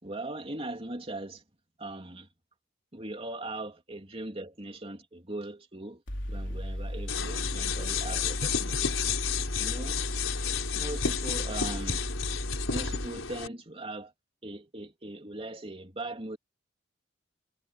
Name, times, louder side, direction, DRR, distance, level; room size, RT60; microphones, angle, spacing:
voice 1, 0.0-1.4 1.8-2.3 2.9-6.0 6.3-9.2 9.6-10.0 10.7-12.0 12.7-14.1 14.4-16.4, right 2 dB, 30° right, 3.1 m, -40 dB
Mechanical fan, 6.1-13.1, equal, 65° left, 4.6 m, -35 dB
sound 1, 7.1-13.5, left 7 dB, 85° left, 4.6 m, -32 dB
head